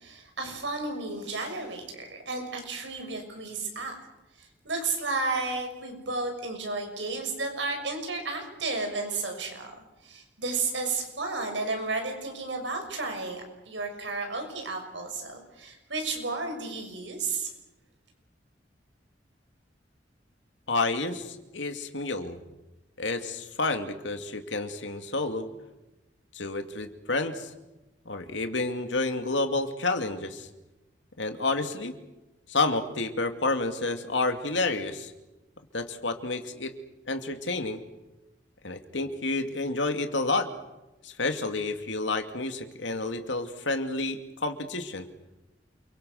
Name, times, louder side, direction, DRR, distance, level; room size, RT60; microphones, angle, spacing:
voice 1, 0.0-4.0 4.4-9.7 10.0-17.5, right 3 dB, 80° right, 4 dB, 6.6 m, -33 dB
voice 2, 20.7-22.4 23.0-25.5 26.3-27.5 28.1-30.5 31.2-31.9 32.5-35.1 35.7-36.7 37.1-37.8 38.6-40.5 41.0-45.1, left 3 dB, 85° left, 7 dB, 2.5 m, -30 dB
29.0 x 24.0 x 6.6 m, 1.0 s
head